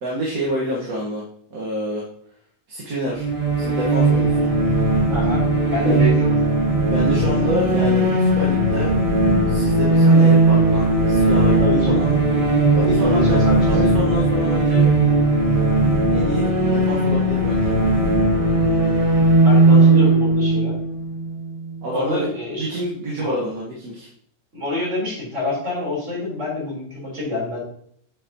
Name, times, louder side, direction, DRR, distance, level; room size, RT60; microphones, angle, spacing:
voice 1, 0.0-1.2 1.5-2.0 2.7-3.3 3.6-4.5 5.8-6.1 6.9-8.9 9.5-12.2 12.7-14.9 16.0-17.7 19.7-20.1 21.8-22.3 22.6-24.1, equal, 75° right, -4 dB, 1.9 m, -28 dB
sound 1, 3.2-21.8, right 2 dB, 25° right, 1.4 m, -17 dB
voice 2, 5.1-6.4 11.6-12.0 13.0-13.8 19.4-20.7 21.9-22.7 23.2-23.4 24.5-27.6, left 2 dB, 55° right, -5 dB, 4.1 m, -27 dB
9.1 x 5.9 x 2.9 m, 0.64 s
omnidirectional pair, 1.6 m